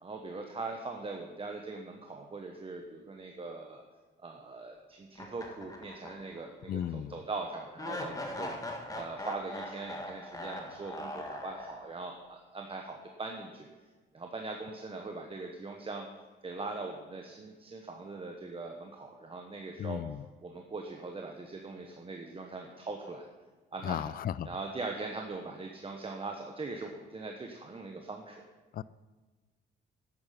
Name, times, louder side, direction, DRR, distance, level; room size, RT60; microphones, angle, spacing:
voice 1, 0.0-3.8 4.2-8.5 8.9-13.7 14.1-16.1 16.4-20.0 20.4-23.3 23.7-24.2 24.4-28.4, right 3 dB, 30° right, 2 dB, 1.2 m, -41 dB
sound 1, 5.1-6.5 6.8-6.9 7.8-12.1, left 1 dB, 15° left, 1.7 m, -41 dB
voice 2, 6.7-7.2 19.8-20.2 23.8-24.5 28.7-28.8, left 10 dB, 45° left, 18 dB, 0.4 m, -35 dB
10.5 x 8.8 x 5.8 m, 1.3 s
cardioid pair, 90°, 20 cm